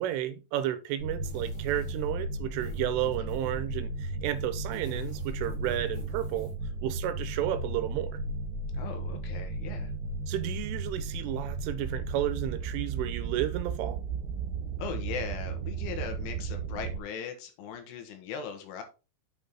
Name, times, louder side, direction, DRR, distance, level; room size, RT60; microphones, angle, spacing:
voice 1, 0.0-6.5 6.8-8.2 10.3-14.0, right 12 dB, 90° right, 3.2 m, -32 dB
sound 1, 1.0-17.0, right 3 dB, 75° right, 3.1 m, -35 dB
sound 2, 1.2-2.2 2.6-3.7 4.6-6.6, left 3 dB, 40° left, 2.4 m, -52 dB
voice 2, 8.7-9.9 14.8-18.8, left 7 dB, 75° left, 3.7 m, -39 dB
8.3 x 5.3 x 4.2 m
omnidirectional pair, 5.7 m